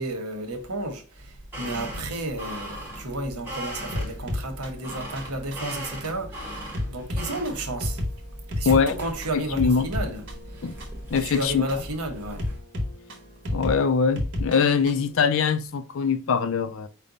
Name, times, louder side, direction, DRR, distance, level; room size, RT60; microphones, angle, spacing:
voice 1, 0.0-8.0 8.6-10.2 11.1-12.4, right 1 dB, 90° right, 1.1 m, -32 dB
sound 1, 1.2-12.6, equal, 10° right, 1.2 m, -39 dB
sound 2, 3.9-15.1, left 1 dB, 60° right, 1.1 m, -33 dB
voice 2, 8.7-9.0 9.3-9.9 10.6-10.8 11.1-11.7 13.5-16.9, left 6 dB, 60° left, 0.4 m, -22 dB
5.0 x 2.2 x 3.9 m
head